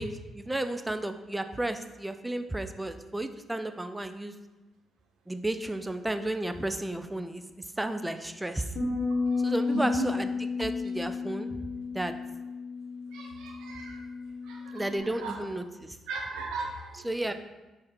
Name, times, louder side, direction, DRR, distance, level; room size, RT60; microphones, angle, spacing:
voice 1, 0.0-4.3 5.3-8.7 9.4-11.7 11.9-12.1 14.7-16.0 16.9-17.3, right 1 dB, 10° right, 9 dB, 0.4 m, -33 dB
Bass guitar, 8.8-15.0, left 4 dB, 55° left, 1.1 m, -32 dB
voice 2, 9.7-10.1 13.1-13.9 14.5-14.8 15.2-15.3 16.1-16.9, right 4 dB, 65° right, 0 dB, 0.5 m, -36 dB
4.1 x 3.3 x 3.8 m, 1.1 s
figure-of-eight pair, 40°, 0 cm